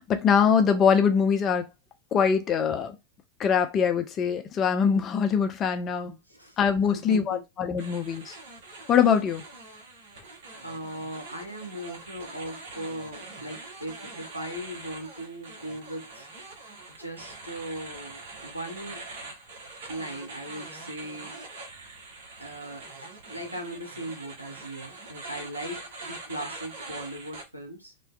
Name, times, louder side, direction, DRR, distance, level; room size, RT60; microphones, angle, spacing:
voice 1, 0.0-1.7 2.1-3.0 3.4-6.1 6.6-8.3 8.9-9.4, left 7 dB, 30° left, 0.4 m, -23 dB
voice 2, 6.0-6.6 6.9-7.4 10.6-16.3 17.0-19.0 19.9-21.3 22.4-27.9, right 1 dB, 90° right, 0.7 m, -38 dB
sound 1, 7.8-27.4, right 3 dB, 55° right, 0.8 m, -43 dB
2.6 x 2.2 x 2.2 m
figure-of-eight pair, 90°, 0 cm